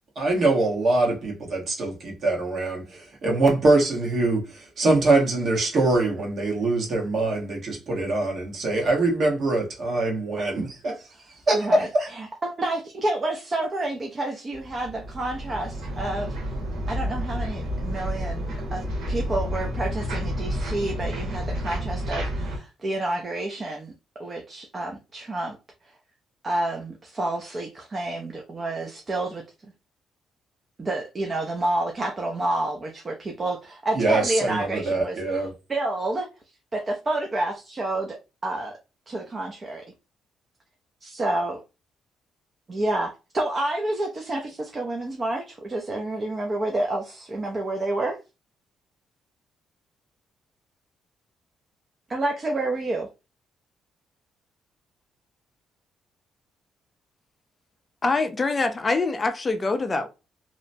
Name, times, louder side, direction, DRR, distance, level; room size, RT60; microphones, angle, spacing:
voice 1, 0.2-11.0 11.5-12.1 33.9-35.5, right 2 dB, 55° right, 1.2 m, -23 dB
voice 2, 11.5-16.5 16.9-23.9 24.2-25.6 26.4-29.4 30.8-36.3 36.7-38.2 38.4-38.7 39.1-39.8 41.0-41.6 42.7-48.2 52.1-53.1, right 2 dB, 35° right, 0.5 m, -29 dB
sound 1, 14.5-22.6, equal, 85° right, 1.2 m, -30 dB
voice 3, 58.0-60.1, left 3 dB, 30° left, 0.4 m, -24 dB
2.8 x 2.1 x 2.6 m
cardioid pair, 90°, 0 cm